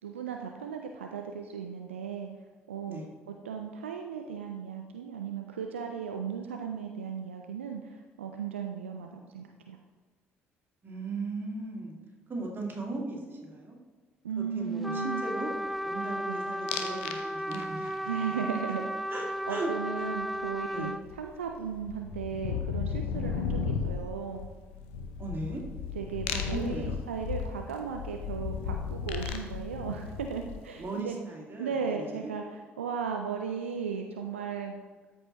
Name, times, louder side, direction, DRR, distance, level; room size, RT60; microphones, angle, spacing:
voice 1, 0.0-2.3 2.7-3.1 3.4-9.8 14.2-15.2 16.0-16.4 18.1-18.8 19.2-20.9 21.2-24.5 26.0-31.2 31.6-32.4 32.8-34.8, right 6 dB, 80° right, 3 dB, 0.4 m, -36 dB
voice 2, 10.8-12.0 12.3-13.8 14.4-15.5 15.8-18.5 19.1-19.7 20.0-20.1 20.7-21.0 25.2-25.6 26.3-26.9 30.8-32.3, right 2 dB, 30° right, -2 dB, 2.2 m, -38 dB
Trumpet, 14.8-21.0, equal, ahead, 0.3 m, -34 dB
sound 1, 16.7-17.2 17.5-18.0 20.4-20.5 20.8-30.8, left 6 dB, 70° left, 0.7 m, -35 dB
13.0 x 5.3 x 3.0 m, 1.4 s
figure-of-eight pair, 50°, 7 cm